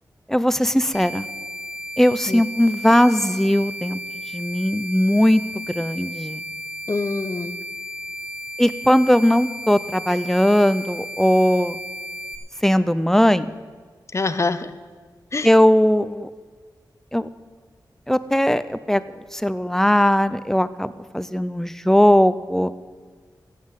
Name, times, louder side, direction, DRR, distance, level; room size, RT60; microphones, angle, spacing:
voice 1, 0.3-1.3 2.0-4.0 4.3-6.4 8.6-11.8 12.6-13.5 15.4-16.3 17.1-17.3 18.1-19.0 19.3-22.7, equal, 5° left, 14 dB, 0.5 m, -19 dB
sound 1, 0.9-12.4, equal, 20° right, 2.7 m, -34 dB
voice 2, 6.9-7.6 14.1-14.7 15.3-15.5, left 3 dB, 40° left, 12 dB, 0.7 m, -25 dB
15.0 x 7.6 x 8.1 m, 1.5 s
wide cardioid pair, 100°, 8 cm